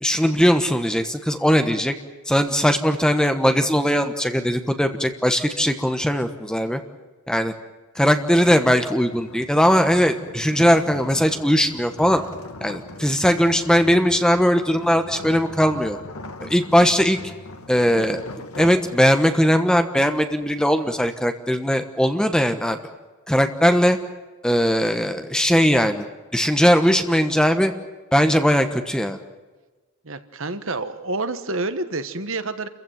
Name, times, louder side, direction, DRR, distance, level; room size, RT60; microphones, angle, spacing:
voice 1, 0.0-1.9 2.3-6.8 7.3-7.5 7.9-12.2 12.6-16.0 16.4-17.2 17.7-18.2 18.6-22.8 23.3-24.0 24.4-26.0 26.3-27.7 28.1-29.2, equal, 5° left, 7 dB, 1.2 m, -19 dB
sound 1, 8.6-19.5, left 2 dB, 75° left, 1.6 m, -40 dB
voice 2, 30.0-32.7, right 2 dB, 60° right, 10 dB, 1.4 m, -28 dB
28.5 x 15.5 x 9.2 m, 1.3 s
head